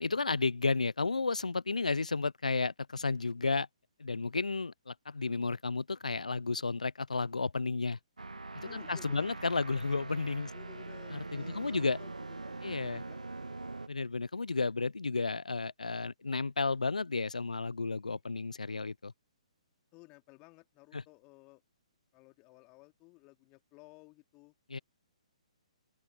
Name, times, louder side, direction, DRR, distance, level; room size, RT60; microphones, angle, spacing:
voice 1, 0.0-3.7 4.0-8.0 8.5-10.5 11.1-12.0 12.6-13.0 13.9-19.1 20.9-21.0 24.7-24.8, left 4 dB, 80° left, 0.4 m, -32 dB
sound 1, 8.2-13.9, right 3 dB, 80° right, 1.8 m, -43 dB
voice 2, 8.6-9.3 10.5-12.1 12.4-13.5 19.9-21.6 22.1-24.5, left 26 dB, 25° left, 2.8 m, -56 dB
open air
figure-of-eight pair, 130°, 4 cm